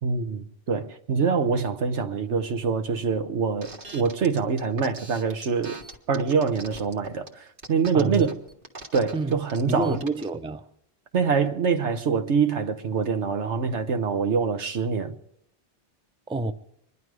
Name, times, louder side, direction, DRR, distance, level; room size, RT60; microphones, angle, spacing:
voice 1, 0.0-5.8 6.1-8.3 8.9-10.0 11.1-15.1, right 5 dB, 85° right, 1.4 m, -25 dB
sound 1, 3.6-10.3, right 2 dB, 50° right, 1.6 m, -41 dB
voice 2, 7.9-8.3 9.1-10.7 16.3-16.5, right 2 dB, 5° right, 0.4 m, -29 dB
25.0 x 11.0 x 4.8 m
omnidirectional pair, 1.1 m